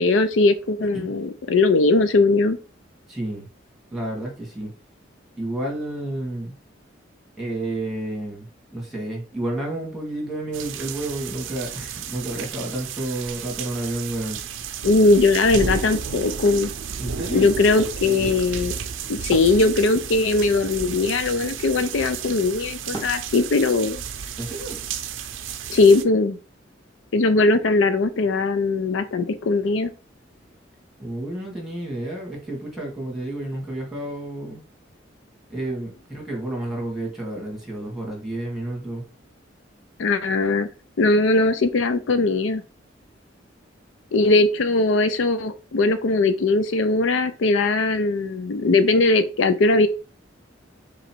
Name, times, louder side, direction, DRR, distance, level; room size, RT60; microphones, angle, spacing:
voice 1, 0.0-2.6 14.8-16.7 17.3-18.7 19.1-24.0 25.7-26.4 27.1-29.9 40.0-40.7 41.0-42.6 44.1-49.9, left 3 dB, 85° left, 11 dB, 0.5 m, -20 dB
voice 2, 3.1-3.5 3.9-4.7 5.4-6.5 7.4-14.4 17.0-17.5 24.4-24.8 31.0-34.6 35.5-39.0, right 1 dB, ahead, -1 dB, 1.5 m, -30 dB
sound 1, 10.5-26.0, right 6 dB, 90° right, 0.5 m, -33 dB
Wood, 17.7-20.1 20.3-20.4 20.6-25.0, right 1 dB, 20° left, 1.3 m, -43 dB
3.8 x 3.0 x 4.4 m, 0.34 s
head